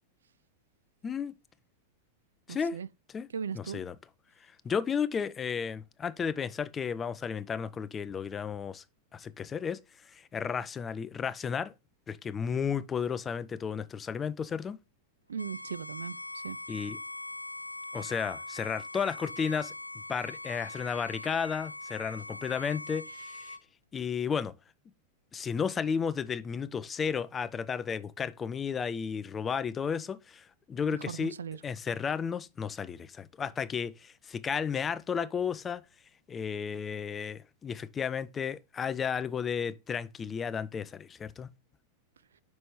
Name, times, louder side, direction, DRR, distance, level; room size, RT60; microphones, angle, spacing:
voice 1, 1.0-1.3 2.5-2.8 3.1-3.3 3.5-4.0 4.4-8.8 9.1-11.7 12.1-14.8 16.7-17.0 17.9-19.7 20.1-23.6 23.9-24.5 25.3-31.3 31.6-35.8 36.3-41.5, left 6 dB, 20° left, 0.5 m, -33 dB
voice 2, 2.5-2.9 3.3-3.8 15.3-16.6 30.9-31.6, right 6 dB, 70° right, 0.3 m, -38 dB
Bowed string instrument, 15.4-23.6, left 2 dB, 90° left, 0.3 m, -42 dB
6.0 x 5.3 x 3.1 m
figure-of-eight pair, 90°, 0 cm